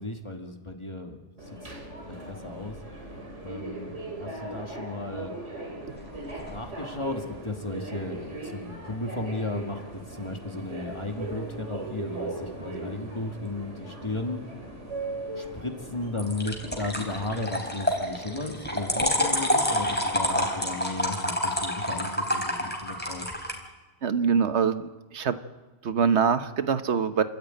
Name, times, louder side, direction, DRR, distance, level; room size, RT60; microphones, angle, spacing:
voice 1, 0.0-1.7 2.1-2.8 3.4-5.3 6.4-14.4 15.4-23.3, left 2 dB, 25° left, 3 dB, 2.0 m, -35 dB
Subway metro underground, 1.4-20.7, right 2 dB, 90° right, 3.8 m, -39 dB
sound 1, 5.9-6.6 16.2-23.5, left 1 dB, 10° left, 3.9 m, -28 dB
voice 2, 24.0-25.3 25.8-27.2, right 6 dB, 70° right, 11 dB, 1.3 m, -24 dB
28.5 x 13.5 x 9.1 m, 1.2 s
omnidirectional pair, 1.2 m